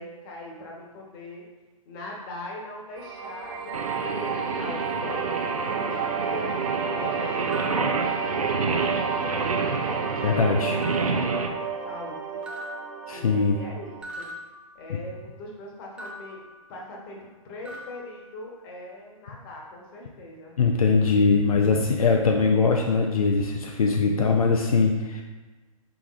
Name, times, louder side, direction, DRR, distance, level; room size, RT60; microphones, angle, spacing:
voice 1, 0.0-1.4 1.9-6.5 6.9-8.1 8.4-9.8 10.3-11.6 11.8-12.4 13.1-14.3 14.7-16.4 16.7-17.2 17.4-20.5, left 1 dB, 35° left, -2 dB, 1.2 m, -41 dB
sound 1, 3.0-14.0, right 5 dB, 40° right, 0.8 m, -32 dB
Singing, 3.7-11.5, right 4 dB, 85° right, 0.5 m, -29 dB
sound 2, 7.5-8.8 9.2-10.0 10.8-12.1 12.4-15.4 16.0-17.4 17.6-19.0, equal, 5° right, 0.4 m, -45 dB
voice 2, 10.2-10.8 13.1-13.6 20.6-25.2, left 4 dB, 80° left, 2 dB, 0.5 m, -21 dB
5.9 x 3.4 x 2.5 m, 1.2 s
hypercardioid pair, 125°, 18 cm